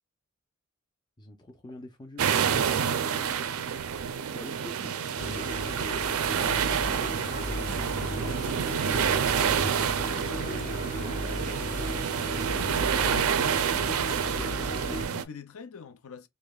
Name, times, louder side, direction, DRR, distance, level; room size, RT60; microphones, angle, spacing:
voice 1, 1.2-3.5 4.3-5.2 6.2-11.3 14.2-14.7, left 1 dB, 20° left, 0.5 m, -47 dB
sound 1, 2.2-15.2, right 7 dB, 75° right, 0.4 m, -28 dB
sound 2, 5.2-15.1, left 1 dB, 35° left, 0.9 m, -36 dB
voice 2, 13.0-16.3, left 6 dB, 75° left, 0.5 m, -43 dB
5.0 x 2.1 x 2.3 m
head